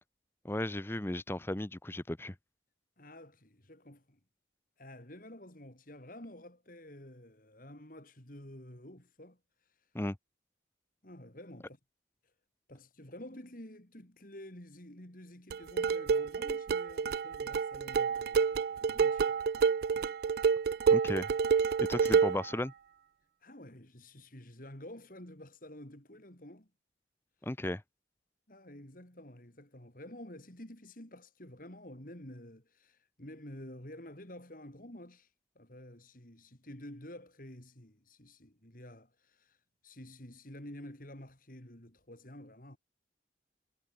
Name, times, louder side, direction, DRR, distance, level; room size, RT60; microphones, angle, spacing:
voice 1, 0.4-2.3 9.9-10.2 20.9-21.3 21.8-22.7 27.4-27.8, left 1 dB, 10° left, 0.7 m, -35 dB
voice 2, 3.0-4.2 4.8-9.9 11.0-11.8 12.2-12.3 12.7-20.1 20.5-20.9 23.4-26.7 27.4-27.5 28.5-42.8, left 1 dB, 45° left, 3.8 m, -50 dB
sound 1, 15.5-22.5, right 6 dB, 55° right, 0.3 m, -28 dB
head